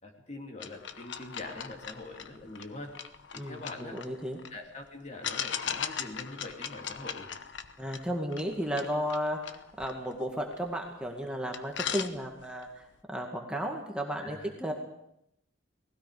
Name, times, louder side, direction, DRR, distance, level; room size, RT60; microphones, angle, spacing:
voice 1, 0.0-3.0 3.3-4.0 4.5-7.3 14.2-14.5, left 2 dB, 35° left, 2 dB, 2.9 m, -43 dB
sound 1, 0.6-4.6 5.2-10.9 11.2-11.3 11.5-12.6, left 8 dB, 65° left, 1.0 m, -39 dB
voice 2, 3.4-4.4 7.8-12.8 13.1-14.7, equal, 5° right, 1 dB, 2.0 m, -34 dB
30.0 x 19.0 x 5.0 m, 0.78 s
head